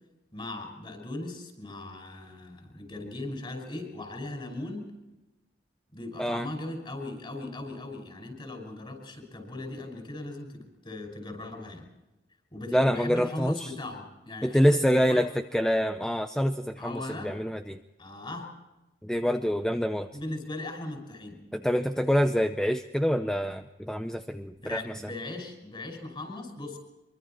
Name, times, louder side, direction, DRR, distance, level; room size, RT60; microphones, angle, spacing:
voice 1, 0.3-4.9 5.9-11.9 12.5-15.2 16.8-17.3 18.0-18.5 20.1-21.4 24.6-26.8, left 2 dB, 25° left, 3 dB, 5.6 m, -38 dB
voice 2, 6.2-6.5 12.7-13.7 14.4-17.8 19.0-20.1 21.5-25.0, equal, 5° left, 8 dB, 0.6 m, -26 dB
24.5 x 23.5 x 4.5 m, 1.0 s
head